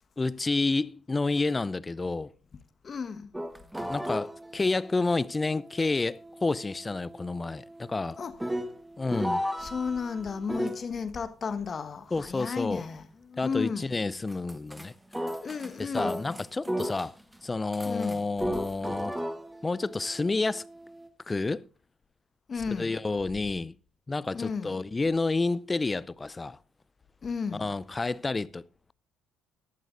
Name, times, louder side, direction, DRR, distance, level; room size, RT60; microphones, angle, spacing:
voice 1, 0.2-2.3 3.9-8.2 9.0-9.4 12.1-12.8 13.4-14.9 15.8-17.1 17.4-19.1 19.6-20.6 21.3-21.7 22.8-23.7 24.1-26.6 27.5-28.6, left 3 dB, 25° left, 0.5 m, -29 dB
voice 2, 2.8-3.3 8.2-8.3 9.6-13.9 15.4-16.4 17.8-18.3 22.5-23.0 24.3-24.8 27.2-27.7, left 5 dB, 40° left, 1.3 m, -34 dB
sound 1, 3.3-10.9 14.3-14.9 15.1-17.4 17.7-21.1, equal, 5° right, 1.3 m, -36 dB
17.0 x 11.5 x 2.5 m
hypercardioid pair, 55°, 0 cm